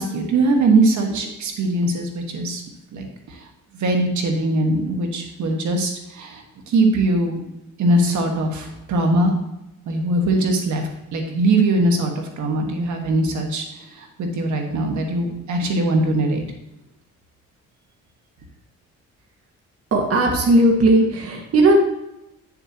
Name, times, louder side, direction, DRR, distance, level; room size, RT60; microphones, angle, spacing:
voice 1, 0.0-2.6 2.9-3.1 3.7-7.4 7.8-9.3 9.9-10.8 11.1-13.6 14.0-16.4, right 2 dB, 70° right, 3 dB, 1.6 m, -21 dB
voice 2, 19.9-21.8, right 1 dB, 50° right, 0 dB, 1.7 m, -16 dB
9.3 x 6.7 x 3.0 m, 0.90 s
cardioid pair, 90°, 30 cm